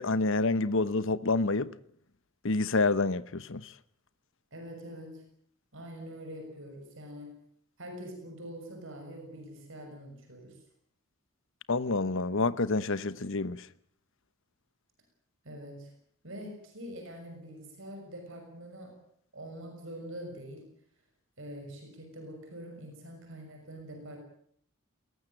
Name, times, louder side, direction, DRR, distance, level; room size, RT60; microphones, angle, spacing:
voice 1, 0.0-1.7 2.4-3.7 11.7-13.7, left 3 dB, 60° left, 1.1 m, -28 dB
voice 2, 4.5-5.3 5.7-7.4 7.8-10.6 15.4-15.9 16.2-19.0 19.3-20.7 21.4-24.3, equal, 60° right, 6.3 m, -44 dB
21.5 x 18.0 x 9.0 m
head